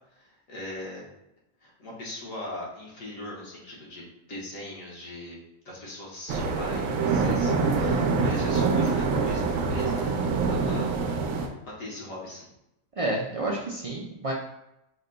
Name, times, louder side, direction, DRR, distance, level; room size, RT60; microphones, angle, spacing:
voice 1, 0.1-1.1 1.6-5.4 5.6-10.9 11.3-12.5, left 1 dB, 75° left, -4 dB, 1.6 m, -40 dB
sound 1, 6.3-11.5, right 4 dB, 85° right, 1.0 m, -25 dB
voice 2, 13.0-14.3, right 1 dB, 60° right, -3 dB, 0.3 m, -29 dB
5.0 x 2.2 x 3.8 m, 0.86 s
omnidirectional pair, 1.4 m